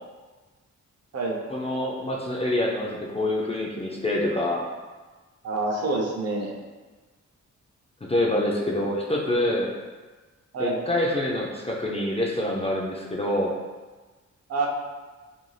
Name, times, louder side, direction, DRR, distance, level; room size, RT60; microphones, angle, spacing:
voice 1, 1.5-4.7 8.0-9.7 10.6-13.5, left 1 dB, 20° left, -2 dB, 0.3 m, -26 dB
voice 2, 5.4-6.5 10.5-10.8 14.5-14.7, right 2 dB, 55° right, -1 dB, 0.6 m, -26 dB
2.6 x 2.2 x 3.1 m, 1.3 s
cardioid pair, 95°, 30 cm